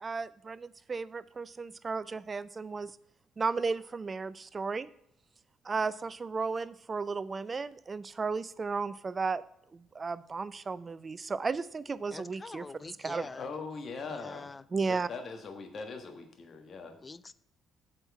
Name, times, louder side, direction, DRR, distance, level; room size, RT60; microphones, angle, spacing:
voice 1, 0.0-2.9 3.4-4.9 5.6-9.4 9.7-12.7 13.0-13.3 14.7-15.1, right 4 dB, 35° right, 0.4 m, -34 dB
voice 2, 12.1-13.5 14.1-14.6 17.0-17.3, left 3 dB, 30° left, 0.4 m, -45 dB
voice 3, 13.2-14.5 14.8-17.0, left 4 dB, 50° left, 1.4 m, -41 dB
8.0 x 4.4 x 7.0 m
hypercardioid pair, 45°, 0 cm